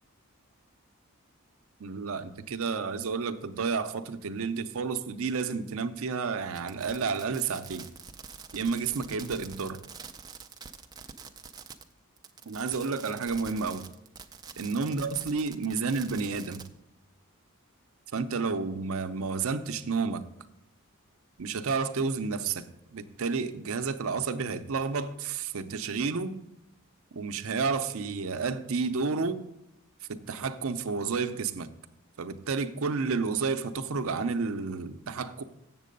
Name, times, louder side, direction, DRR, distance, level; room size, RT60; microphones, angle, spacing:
voice 1, 1.8-7.8 8.5-9.8 12.5-13.9 14.6-16.7 18.1-20.2 21.4-22.7 22.9-26.4 27.1-29.4 30.1-31.7 32.2-35.4, right 4 dB, 70° right, 0.5 m, -31 dB
Fireworks, 6.5-11.9 12.2-16.7, right 6 dB, 20° right, 0.4 m, -46 dB
7.4 x 7.4 x 5.2 m
head